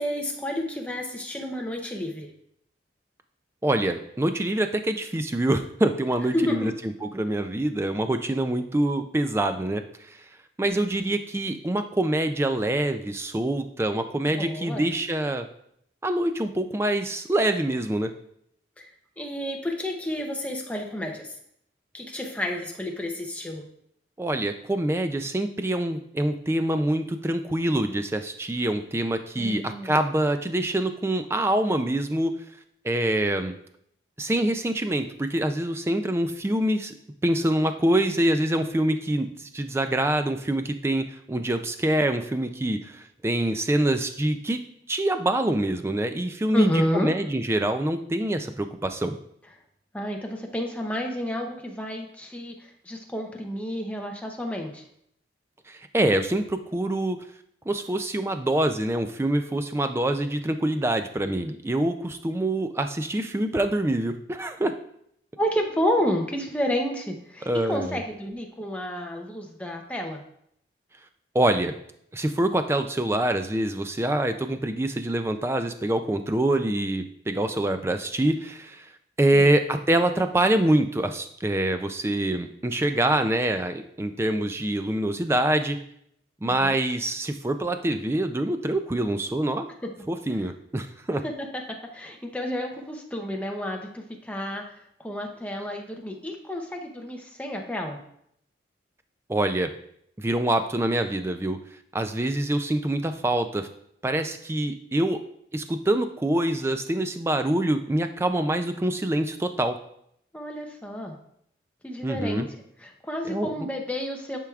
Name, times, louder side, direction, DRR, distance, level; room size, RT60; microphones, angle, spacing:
voice 1, 0.0-2.3 6.3-6.7 14.4-14.9 18.8-21.3 21.9-23.7 29.4-29.9 46.5-47.1 49.9-54.8 65.4-70.2 79.3-79.5 86.4-86.8 91.2-94.6 95.0-98.0 110.3-111.2 111.8-112.5 112.8-114.4, equal, 5° left, 1 dB, 0.7 m, -30 dB
voice 2, 3.6-6.7 7.0-9.8 10.1-10.2 10.6-15.5 16.0-18.1 24.2-32.3 32.8-33.5 34.2-36.9 37.2-44.6 44.9-49.1 55.7-57.2 57.7-64.7 67.5-68.0 71.3-71.7 72.1-78.9 79.2-85.8 86.4-89.7 90.1-91.2 99.3-99.7 100.2-101.6 101.9-103.7 104.0-105.2 105.5-109.8 112.0-112.5 113.3-113.7, right 1 dB, 15° right, 8 dB, 0.3 m, -25 dB
10.0 x 4.6 x 2.4 m, 0.72 s
head